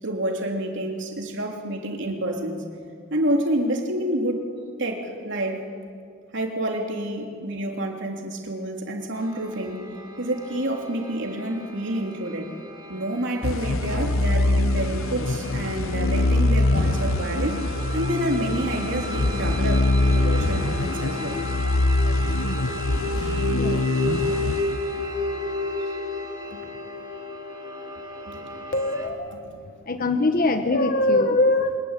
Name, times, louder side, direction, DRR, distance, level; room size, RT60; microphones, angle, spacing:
voice 1, 0.0-2.6 3.1-4.5 4.8-5.6 6.3-9.9 10.2-12.5 12.9-21.4 23.1-23.4 26.5-26.6 28.2-28.4, right 1 dB, 60° right, 1 dB, 3.3 m, -28 dB
sound 1, 9.1-29.1, left 1 dB, 20° right, 2.6 m, -34 dB
sound 2, 13.4-25.3, left 2 dB, 75° left, 0.9 m, -23 dB
voice 2, 23.4-23.8 28.7-29.4 29.9-31.8, left 2 dB, 45° left, 7 dB, 1.1 m, -22 dB
24.0 x 21.0 x 9.9 m, 2.3 s
head